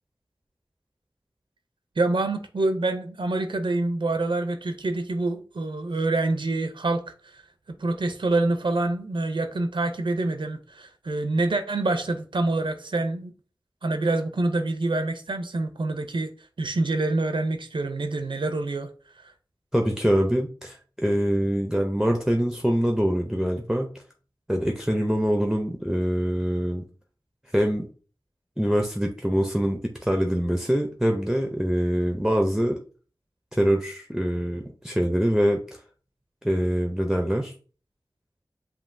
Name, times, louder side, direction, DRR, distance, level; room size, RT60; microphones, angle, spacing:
voice 1, 2.0-7.0 7.3-7.4 7.7-13.3 13.8-16.3 16.6-18.9 19.2-19.3, right 2 dB, 75° right, 0.5 m, -26 dB
voice 2, 19.7-23.9 24.5-26.8 27.5-27.9 28.6-32.8 33.5-35.6 36.4-37.5, equal, 5° right, 0.5 m, -24 dB
7.3 x 2.7 x 2.6 m
wide cardioid pair, 65°, 9 cm